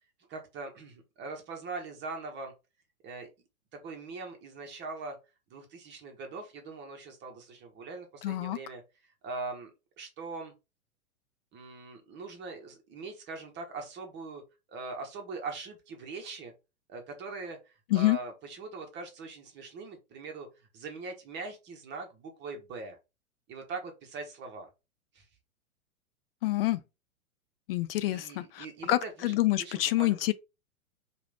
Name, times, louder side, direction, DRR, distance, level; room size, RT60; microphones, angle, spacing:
voice 1, 0.3-2.5 3.0-3.3 3.8-5.2 5.5-8.8 9.2-9.7 10.0-10.5 11.5-14.4 14.7-16.5 16.9-20.5 20.7-23.0 23.5-24.7 25.1-25.2 28.0-30.1, right 3 dB, 25° right, 1.0 m, -41 dB
voice 2, 8.2-8.6 17.9-18.2 26.4-26.8 27.7-30.3, left 16 dB, 40° left, 0.5 m, -27 dB
4.9 x 2.5 x 3.4 m
hypercardioid pair, 115°, 44 cm